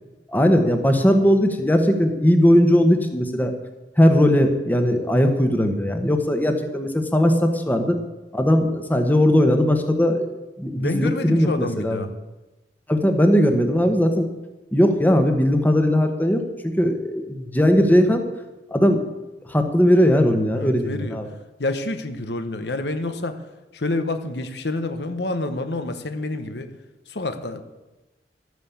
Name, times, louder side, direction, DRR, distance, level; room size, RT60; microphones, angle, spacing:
voice 1, 0.3-3.5 4.0-8.0 8.3-12.1 12.9-14.3 14.7-18.2 18.7-19.0 19.5-21.3, equal, 10° left, 6 dB, 1.1 m, -19 dB
voice 2, 10.7-12.1 20.6-21.2 21.6-23.4 23.7-26.7 27.1-27.6, left 2 dB, 70° left, 9 dB, 1.1 m, -28 dB
12.5 x 9.4 x 7.2 m, 1.1 s
head